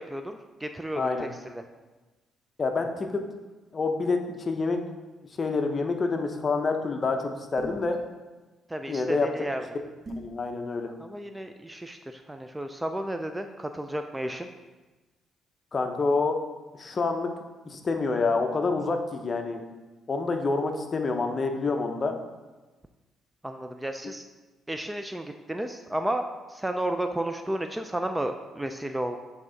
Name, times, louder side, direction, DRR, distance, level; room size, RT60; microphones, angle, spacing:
voice 1, 0.0-1.6 8.7-9.7 11.0-14.5 23.4-24.2 24.7-29.2, right 1 dB, 10° right, 6 dB, 0.4 m, -33 dB
voice 2, 0.9-1.3 2.6-3.3 3.7-4.8 5.4-8.0 8.9-9.3 10.2-10.9 15.7-16.4 16.8-17.3 17.7-19.6 20.1-22.2, left 3 dB, 35° left, 5 dB, 0.7 m, -27 dB
sound 1, 7.6-8.0 10.0-10.4, right 1 dB, 35° right, 1.4 m, -39 dB
7.5 x 3.6 x 3.8 m, 1.2 s
cardioid pair, 90°, 0 cm